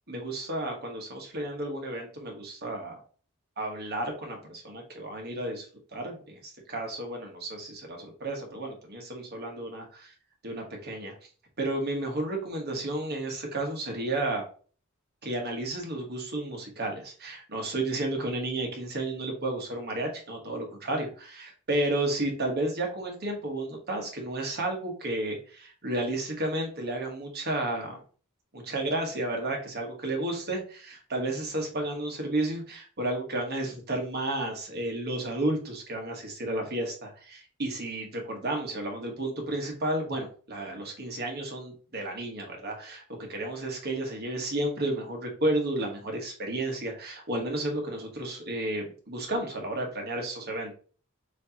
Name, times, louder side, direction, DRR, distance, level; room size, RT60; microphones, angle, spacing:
voice 1, 0.1-3.0 3.6-10.1 10.4-11.1 11.6-14.4 15.2-28.0 28.5-50.8, right 1 dB, 50° right, 2 dB, 1.3 m, -32 dB
6.3 x 2.8 x 2.9 m, 0.41 s
head